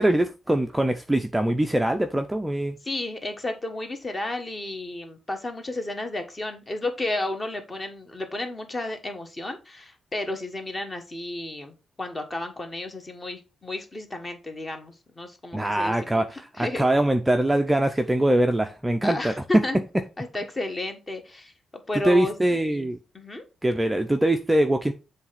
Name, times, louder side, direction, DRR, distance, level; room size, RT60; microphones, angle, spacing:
voice 1, 0.0-2.8 15.5-19.6 22.0-23.0 23.6-24.9, right 1 dB, 10° right, 0.5 m, -23 dB
voice 2, 2.8-16.2 16.5-16.9 19.0-19.8 20.2-21.5 21.9-22.3 22.6-22.9 23.1-23.4, left 2 dB, 20° left, 1.4 m, -32 dB
7.4 x 3.3 x 5.7 m
wide cardioid pair, 150°, 0 cm